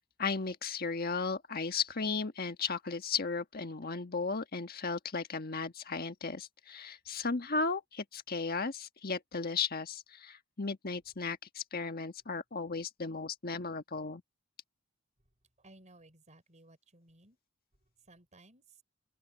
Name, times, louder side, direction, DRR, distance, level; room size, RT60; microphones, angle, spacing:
voice 1, 0.2-14.2, left 4 dB, 45° left, 1.4 m, -35 dB
voice 2, 15.6-17.4 18.0-18.8, right 2 dB, 35° right, 5.5 m, -59 dB
open air
head